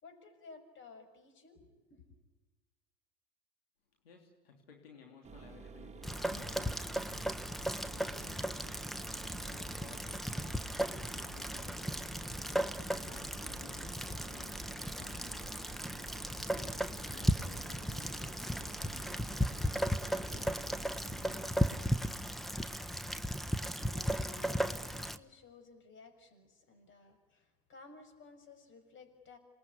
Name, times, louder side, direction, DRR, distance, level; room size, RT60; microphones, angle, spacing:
voice 1, 0.0-2.1 23.8-29.4, left 4 dB, 40° left, 8 dB, 6.5 m, -56 dB
voice 2, 4.0-8.9 9.5-15.7 16.5-19.6 20.1-21.7 27.0-27.1, left 5 dB, 85° left, 2 dB, 3.3 m, -58 dB
Mechanisms, 5.2-21.5, right 5 dB, 25° right, 2.1 m, -51 dB
Rain, 6.0-25.2, equal, ahead, 1.2 m, -36 dB
27.5 x 20.5 x 9.9 m, 1.3 s
hypercardioid pair, 80°, 29 cm